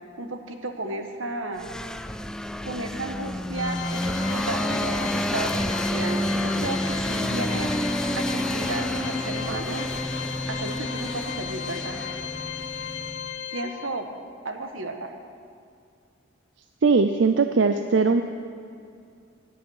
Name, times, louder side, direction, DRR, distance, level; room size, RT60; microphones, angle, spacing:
voice 1, 0.2-1.7 2.6-9.9 10.5-12.0 13.5-14.1 14.4-15.1, right 2 dB, 85° right, 5 dB, 1.3 m, -33 dB
sound 1, 1.6-13.3, equal, 5° left, 0.3 m, -29 dB
Organ, 3.5-14.2, left 9 dB, 70° left, 0.5 m, -35 dB
voice 2, 16.8-18.2, right 4 dB, 65° right, 8 dB, 0.5 m, -20 dB
17.5 x 9.9 x 6.4 m, 2.3 s
head